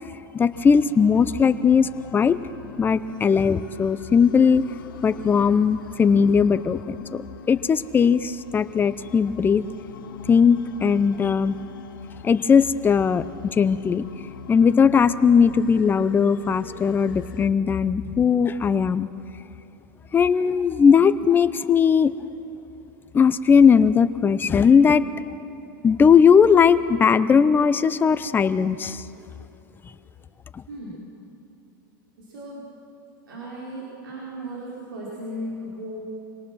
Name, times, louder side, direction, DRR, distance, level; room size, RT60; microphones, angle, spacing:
voice 1, 0.3-2.4 2.8-4.6 5.0-9.6 10.3-11.6 12.2-14.0 14.5-19.1 20.1-22.1 23.1-25.1 25.8-29.0 30.5-30.6, left 6 dB, 20° left, 13 dB, 0.7 m, -18 dB
sound 1, 0.5-17.5, left 8 dB, 85° left, 0.9 m, -43 dB
voice 2, 33.3-36.0, equal, 85° right, -7 dB, 5.0 m, -35 dB
25.0 x 18.5 x 6.2 m, 2.9 s
hypercardioid pair, 120°, 11 cm